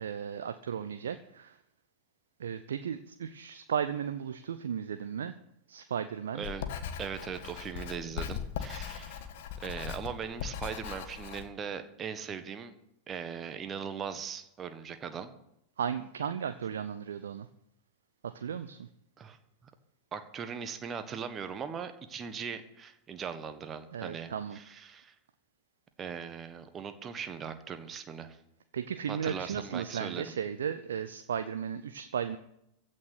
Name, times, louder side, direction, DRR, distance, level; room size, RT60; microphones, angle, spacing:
voice 1, 0.0-1.6 2.4-5.3 5.7-6.5 15.8-17.5 18.2-18.9 23.9-24.6 28.7-32.4, right 8 dB, 65° right, 11 dB, 0.7 m, -35 dB
Writing, 6.4-11.5, left 9 dB, 50° left, 1.5 m, -39 dB
voice 2, 7.0-9.3 9.6-12.7 13.1-15.3 19.2-19.4 20.1-25.1 26.0-28.4 29.1-30.3, right 7 dB, 25° right, 9 dB, 1.5 m, -39 dB
15.5 x 6.6 x 9.4 m, 0.78 s
figure-of-eight pair, 90°, 0 cm